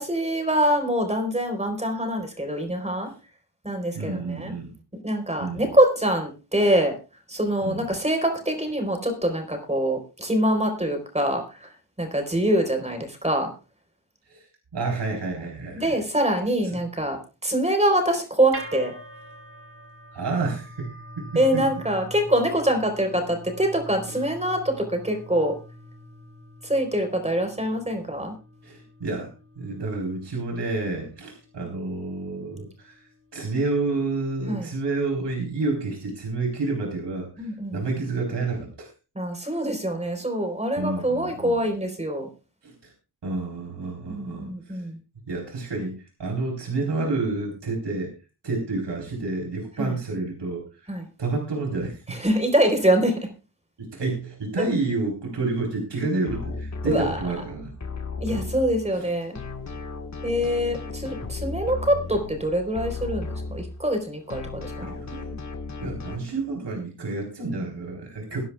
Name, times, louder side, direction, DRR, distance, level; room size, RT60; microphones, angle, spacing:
voice 1, 0.0-3.1 3.6-4.5 4.9-6.9 7.3-11.7 12.0-13.5 15.7-17.2 17.4-18.9 21.4-25.6 26.6-28.3 34.5-34.7 37.4-37.8 39.2-42.3 44.1-45.0 49.8-49.9 50.9-51.1 52.1-53.3 54.6-54.7 56.8-57.2 58.2-59.3 60.2-64.9, right 1 dB, 15° right, 4 dB, 3.9 m, -24 dB
voice 2, 3.9-4.7 5.4-5.7 7.6-7.9 14.3-14.5 14.7-15.9 16.7-16.8 20.1-21.6 28.6-29.3 29.6-33.0 33.3-38.9 40.8-41.6 42.6-42.9 43.2-44.8 45.3-48.1 48.4-50.7 51.2-52.2 53.9-57.7 58.3-58.4 58.9-59.1 64.8-65.3 65.8-68.4, right 3 dB, 80° right, 0 dB, 4.0 m, -29 dB
sound 1, 18.5-34.7, equal, 35° right, 5.5 m, -45 dB
sound 2, 56.3-59.1 59.4-64.0 64.3-66.2, left 3 dB, 40° left, 1.6 m, -35 dB
23.5 x 10.5 x 2.4 m, 0.31 s
wide cardioid pair, 85°, 41 cm